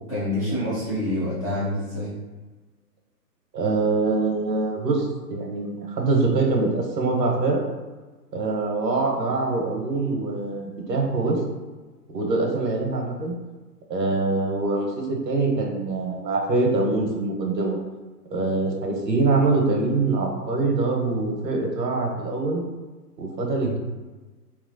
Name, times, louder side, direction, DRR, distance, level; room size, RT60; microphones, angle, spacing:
voice 1, 0.1-2.2, left 1 dB, 25° left, -10 dB, 0.4 m, -27 dB
voice 2, 3.5-7.6 8.3-11.4 12.1-13.3 13.9-17.8 18.3-22.6 23.2-23.8, right 3 dB, 90° right, 1 dB, 1.0 m, -24 dB
3.1 x 3.1 x 2.6 m, 1.3 s
hypercardioid pair, 140°, 49 cm